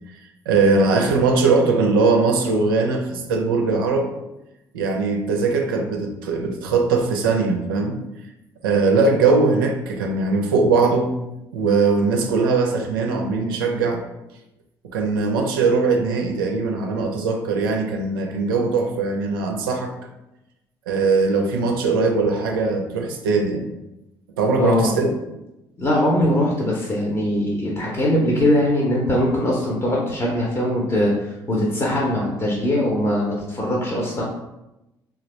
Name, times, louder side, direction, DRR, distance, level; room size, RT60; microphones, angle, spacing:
voice 1, 0.5-4.1 4.7-8.0 8.6-11.2 11.5-14.0 14.8-19.9 20.9-23.7 24.4-25.1, right 4 dB, 75° right, 3 dB, 0.4 m, -20 dB
voice 2, 24.6-24.9 25.8-34.2, left 1 dB, 25° left, -3 dB, 0.7 m, -21 dB
3.2 x 2.3 x 3.0 m, 0.94 s
figure-of-eight pair, 45°, 11 cm